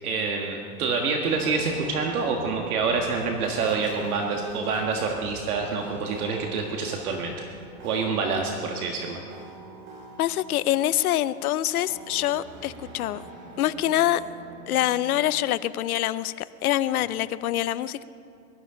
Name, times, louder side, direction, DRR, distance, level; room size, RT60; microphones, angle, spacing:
voice 1, 0.0-7.5 7.8-9.2, right 4 dB, 70° right, 1 dB, 1.7 m, -27 dB
sound 1, 1.2-15.5, right 2 dB, 25° right, 1.8 m, -44 dB
voice 2, 10.2-13.2 13.6-14.2 14.7-16.3 16.6-18.0, left 13 dB, 70° left, 16 dB, 0.7 m, -25 dB
23.0 x 12.5 x 3.8 m, 2.4 s
supercardioid pair, 165°, 45 cm